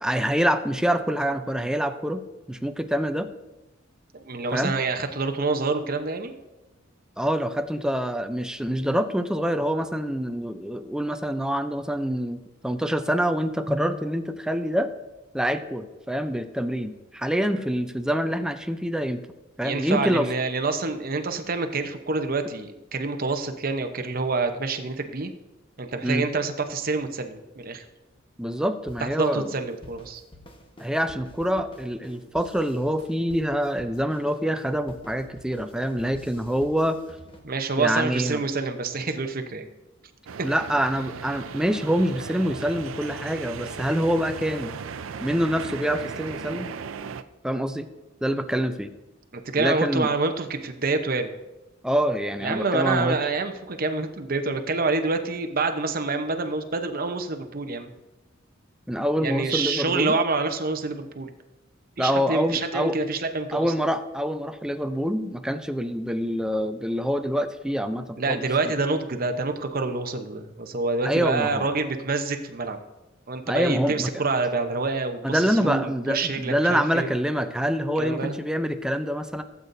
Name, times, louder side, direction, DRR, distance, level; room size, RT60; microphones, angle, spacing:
voice 1, 0.0-2.2 2.5-3.3 4.5-4.7 7.2-14.9 15.3-19.2 19.6-20.3 26.0-26.2 28.4-29.5 30.8-37.0 37.8-38.4 40.4-44.7 45.2-46.7 47.4-47.9 48.2-48.9 49.6-50.1 51.8-53.2 58.9-60.1 62.0-63.0 63.5-68.4 71.0-71.7 73.5-74.1 75.2-79.4, equal, 5° right, 8 dB, 0.4 m, -26 dB
voice 2, 4.1-6.3 19.6-25.3 25.8-27.8 29.0-30.2 37.4-39.7 49.3-51.3 52.4-57.9 59.2-61.3 62.0-63.7 68.2-72.8 73.3-77.1 78.0-78.4, right 3 dB, 45° right, 6 dB, 0.8 m, -27 dB
sound 1, 28.9-37.4, left 1 dB, 25° left, 1.1 m, -48 dB
sound 2, 40.3-47.2, right 6 dB, 85° right, 0.5 m, -37 dB
16.5 x 8.2 x 2.6 m, 1.0 s
head